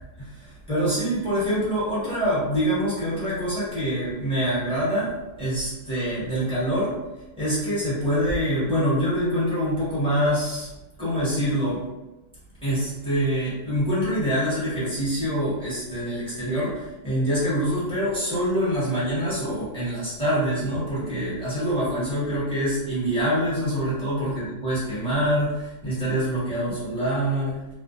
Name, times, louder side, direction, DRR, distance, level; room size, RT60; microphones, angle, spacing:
voice 1, 0.2-5.1 5.4-7.0 7.4-10.7 11.0-11.8 12.6-27.6, equal, 5° left, -10 dB, 1.2 m, -25 dB
2.7 x 2.3 x 2.5 m, 1.0 s
omnidirectional pair, 1.6 m